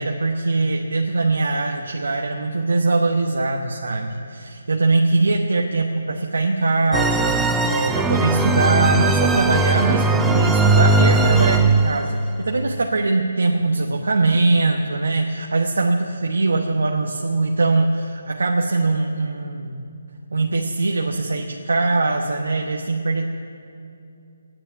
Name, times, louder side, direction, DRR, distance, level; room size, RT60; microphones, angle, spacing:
voice 1, 0.0-19.8 20.3-23.3, right 3 dB, 90° right, 1 dB, 1.1 m, -21 dB
sound 1, 6.9-12.1, right 3 dB, 5° right, 0.5 m, -18 dB
15.0 x 10.0 x 8.9 m, 2.6 s
hypercardioid pair, 165°, 0 cm